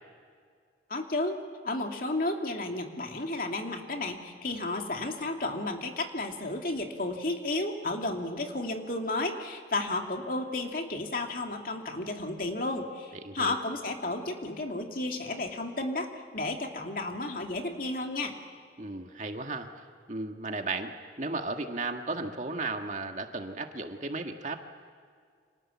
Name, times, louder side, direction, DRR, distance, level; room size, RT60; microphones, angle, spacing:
voice 1, 0.9-18.4, left 2 dB, 50° left, 3 dB, 2.6 m, -32 dB
voice 2, 13.1-13.6 18.8-19.7 20.1-24.7, right 3 dB, 40° right, 5 dB, 1.8 m, -35 dB
30.0 x 26.0 x 7.4 m, 2.1 s
head